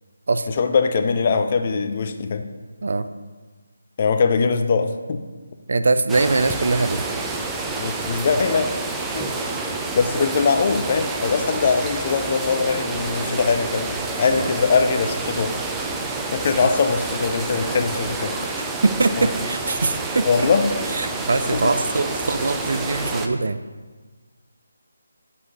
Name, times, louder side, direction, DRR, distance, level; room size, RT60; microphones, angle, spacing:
voice 1, 0.5-2.4 4.0-5.2 7.8-8.7 9.1-9.3 9.9-15.5 16.3-18.5 19.2-19.3 20.2-20.6 21.5-21.7, left 5 dB, 40° left, 8 dB, 0.5 m, -21 dB
voice 2, 5.7-7.0 14.3-14.5 18.6-20.5 20.9-23.6, right 3 dB, 65° right, 11 dB, 0.4 m, -22 dB
sound 1, 6.1-23.3, right 3 dB, 10° right, 0.4 m, -28 dB
5.5 x 4.7 x 6.4 m, 1.4 s
figure-of-eight pair, 155°, 0 cm